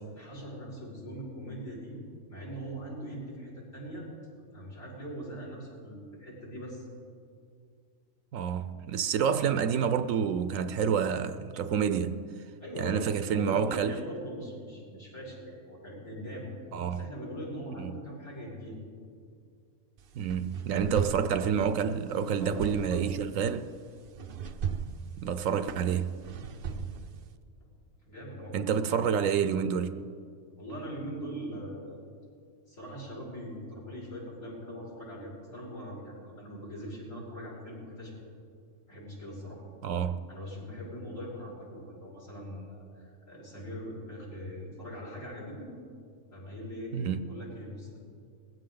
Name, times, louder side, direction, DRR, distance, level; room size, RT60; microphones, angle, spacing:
voice 1, 0.1-2.0 2.3-4.1 4.5-6.9 12.6-16.5 16.9-18.8 20.8-21.2 22.4-23.0 26.5-26.8 27.6-27.7 28.1-29.5 30.6-32.0 32.7-38.1 38.9-39.6 40.3-45.7 46.3-46.9 47.2-48.0, equal, 65° left, 5.7 m, -41 dB
voice 2, 8.3-12.2 12.8-14.0 16.7-17.0 17.8-17.9 20.2-23.7 25.2-26.2 28.5-30.0 39.8-40.2 46.9-47.2, right 7 dB, 70° right, 1.0 m, -28 dB
sound 1, 20.0-27.3, right 7 dB, 55° right, 0.6 m, -39 dB
20.5 x 15.5 x 3.9 m
omnidirectional pair, 1.5 m